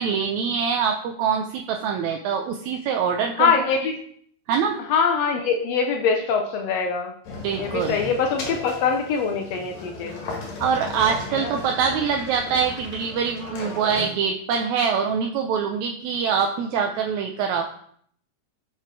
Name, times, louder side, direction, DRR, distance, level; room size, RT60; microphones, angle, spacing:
voice 1, 0.0-3.5 4.5-4.8 7.4-8.0 10.6-17.6, right 6 dB, 75° right, 3 dB, 1.7 m, -24 dB
voice 2, 3.4-3.9 4.9-7.1 7.6-10.1 11.3-11.5, left 5 dB, 75° left, 4 dB, 1.5 m, -23 dB
sound 1, 7.2-14.1, left 3 dB, 60° left, 2.7 m, -36 dB
7.4 x 5.1 x 4.6 m, 0.63 s
omnidirectional pair, 3.8 m